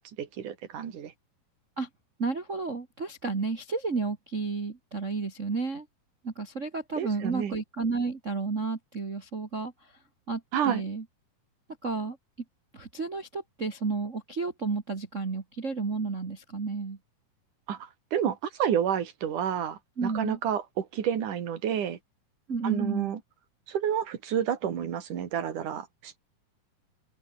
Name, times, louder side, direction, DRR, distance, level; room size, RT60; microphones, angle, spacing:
voice 1, 0.2-1.1 7.0-7.5 10.5-10.8 17.7-22.0 22.6-23.2 23.7-26.2, right 9 dB, 60° right, 3.7 m, -30 dB
voice 2, 2.2-5.9 6.2-9.9 10.3-11.0 11.8-12.2 12.7-17.0 20.0-20.4 22.5-23.1, right 4 dB, 40° right, 1.1 m, -32 dB
open air
omnidirectional pair, 4.2 m